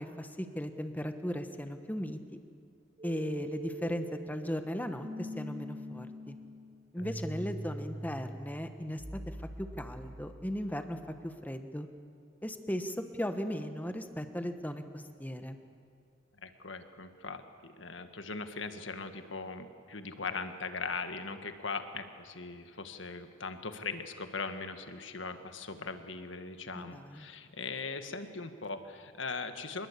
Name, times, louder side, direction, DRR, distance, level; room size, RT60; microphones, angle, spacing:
voice 1, 0.0-2.2 3.0-6.4 6.9-11.0 11.2-11.9 12.4-15.6 26.7-27.3, equal, 10° left, 7 dB, 1.4 m, -37 dB
sound 1, 3.0-10.9, equal, 25° right, 1.2 m, -43 dB
voice 2, 16.4-29.9, left 4 dB, 70° left, 8 dB, 1.7 m, -40 dB
26.0 x 21.0 x 8.6 m, 2.3 s
head